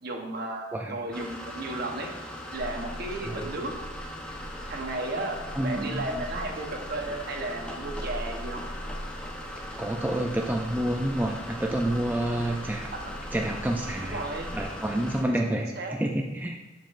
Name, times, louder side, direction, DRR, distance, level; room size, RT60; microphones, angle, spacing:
voice 1, 0.0-2.1 2.5-3.7 4.7-8.6 13.0-13.1 14.0-14.5 15.3-15.4 15.8-15.9, right 2 dB, 55° right, 2 dB, 1.0 m, -34 dB
voice 2, 0.7-1.0 3.2-3.5 5.5-6.1 9.8-12.9 13.3-14.3 14.5-16.6, right 1 dB, 10° right, 1 dB, 0.4 m, -29 dB
sound 1, 1.1-15.2, left 1 dB, 5° left, 0.8 m, -40 dB
sound 2, 2.5-14.6, equal, 35° left, 2.1 m, -42 dB
7.5 x 7.3 x 2.5 m, 1.1 s
head